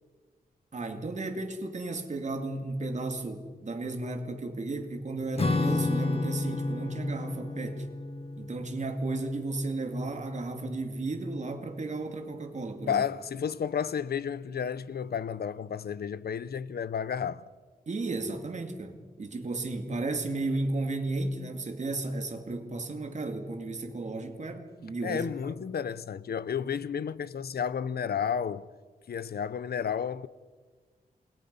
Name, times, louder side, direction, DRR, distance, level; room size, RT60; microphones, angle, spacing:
voice 1, 0.7-7.9 8.4-13.0 17.9-25.3, right 2 dB, 50° right, 2.5 m, -34 dB
Acoustic guitar / Strum, 5.4-10.2, left 2 dB, 40° left, 1.3 m, -32 dB
voice 2, 12.9-17.4 25.0-28.7 29.1-30.3, left 7 dB, 85° left, 0.7 m, -32 dB
28.5 x 21.5 x 5.5 m
wide cardioid pair, 150°, 16 cm